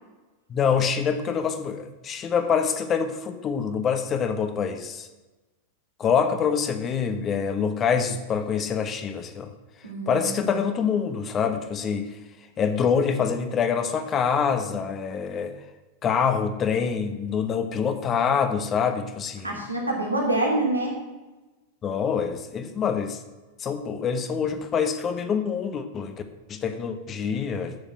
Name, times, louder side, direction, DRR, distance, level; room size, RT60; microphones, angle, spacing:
voice 1, 0.5-5.1 6.0-9.5 10.1-12.1 12.6-15.5 16.0-19.5 21.8-23.2 23.6-26.2 26.5-27.8, left 6 dB, 25° left, 8 dB, 1.2 m, -25 dB
voice 2, 9.8-10.4 19.4-21.0, right 2 dB, 85° right, -1 dB, 2.9 m, -26 dB
9.6 x 7.1 x 7.4 m, 1.2 s
figure-of-eight pair, 90°, 0 cm